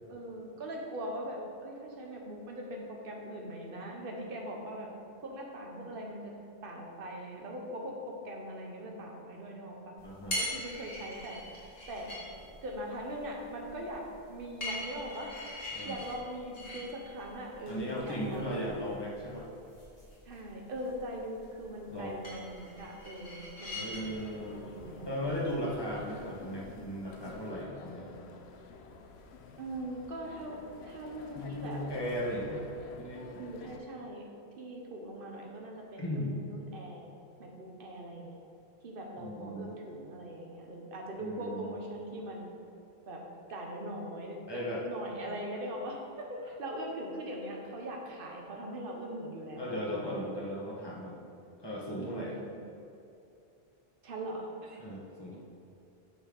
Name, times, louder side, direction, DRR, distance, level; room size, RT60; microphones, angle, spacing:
voice 1, 0.1-4.9 5.2-6.3 6.6-9.9 10.4-11.4 11.9-12.2 12.6-15.3 15.8-18.7 20.3-23.9 24.4-25.1 29.6-31.8 33.4-34.3 34.6-37.1 37.4-38.4 38.8-42.5 43.1-43.2 43.5-50.3 52.0-52.4 54.0-54.8, right 1 dB, 60° right, 0 dB, 1.3 m, -41 dB
sound 1, 10.0-27.5, left 1 dB, 65° left, 2.2 m, -44 dB
voice 2, 10.0-10.4 15.7-16.0 17.7-19.5 21.9-22.1 23.7-24.7 25.1-28.1 31.3-32.7 32.9-33.2 36.0-36.3 39.2-39.7 41.2-41.7 44.5-44.8 49.6-51.2 51.6-52.4 54.8-55.4, equal, 25° left, -5 dB, 1.6 m, -37 dB
sound 2, 24.0-33.8, left 4 dB, 90° left, 0.9 m, -50 dB
8.8 x 4.4 x 5.4 m, 2.7 s
omnidirectional pair, 1.1 m